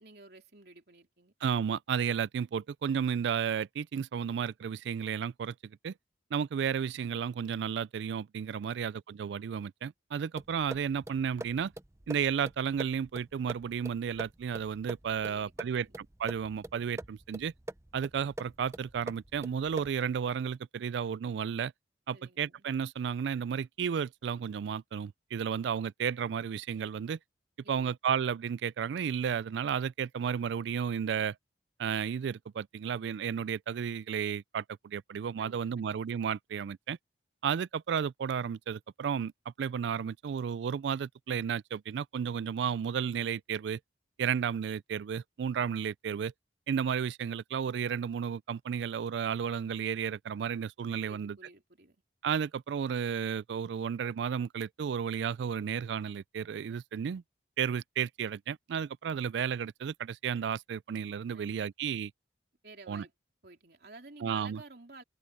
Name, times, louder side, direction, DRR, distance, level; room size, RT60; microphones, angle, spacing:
voice 1, 0.0-1.3 15.2-15.9 22.1-22.7 27.6-27.9 35.4-35.9 51.0-52.0 61.3-61.7 62.6-63.1 63.4-65.0, right 3 dB, 60° right, 3.5 m, -53 dB
voice 2, 1.4-5.9 6.3-11.7 12.1-17.5 17.9-21.7 22.1-27.2 27.7-31.4 31.8-37.0 37.4-39.3 39.6-43.8 44.2-46.3 46.7-51.4 52.2-57.2 57.6-62.1 62.9-63.0 64.2-64.6, right 7 dB, 75° right, 0.3 m, -33 dB
sound 1, 10.4-20.1, right 1 dB, 15° right, 0.7 m, -45 dB
open air
head